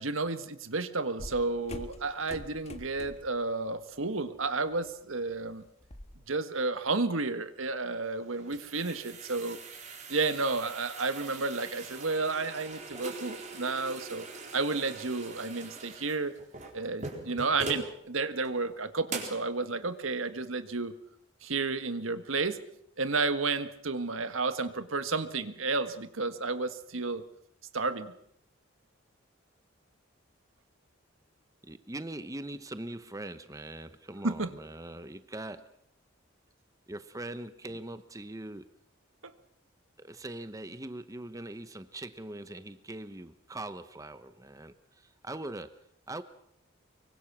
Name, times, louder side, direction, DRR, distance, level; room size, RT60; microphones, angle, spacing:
voice 1, 0.0-5.6 6.3-9.6 10.1-14.3 14.5-16.3 16.7-20.9 21.4-22.6 23.0-27.2 27.7-28.1 34.2-34.5 39.2-39.3, right 3 dB, 85° right, 10 dB, 1.6 m, -31 dB
sound 1, 1.2-3.4 3.8-4.1 4.5-6.2, left 1 dB, 30° left, 1.7 m, -45 dB
sound 2, 8.1-17.9 18.4-18.5 19.1-19.5, right 3 dB, 35° right, 4.3 m, -42 dB
voice 2, 31.6-35.7 36.9-38.7 40.0-44.7 45.2-45.7 46.1-46.2, right 1 dB, 15° right, 12 dB, 0.9 m, -41 dB
24.5 x 23.5 x 6.1 m, 0.71 s
head